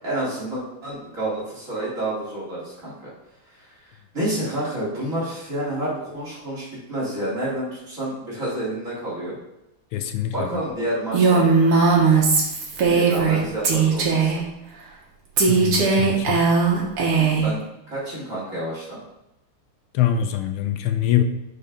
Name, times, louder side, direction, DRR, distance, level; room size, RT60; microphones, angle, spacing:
voice 1, 0.0-2.9 3.5-3.6 4.1-9.4 10.3-11.5 12.8-14.4 17.1-19.0, right 1 dB, 35° right, -8 dB, 3.6 m, -29 dB
voice 2, 9.9-10.6 15.5-16.4 19.9-21.2, left 10 dB, 85° left, 8 dB, 1.5 m, -24 dB
Female speech woman speaking, 11.1-13.4 13.6-14.4 15.4-17.5, right 4 dB, 85° right, 2.3 m, -18 dB
6.8 x 5.1 x 5.6 m, 0.89 s
omnidirectional pair, 2.3 m